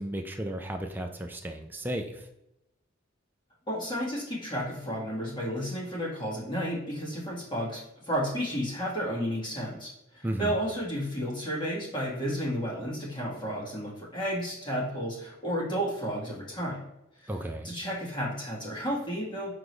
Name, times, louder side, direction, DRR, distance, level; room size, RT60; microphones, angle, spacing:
voice 1, 0.0-2.2 10.2-10.5 17.3-17.7, right 1 dB, 10° right, 3 dB, 0.5 m, -34 dB
voice 2, 3.7-16.8 17.2-17.3 17.6-19.5, equal, 25° left, -5 dB, 1.9 m, -32 dB
5.9 x 5.0 x 3.2 m, 0.86 s
head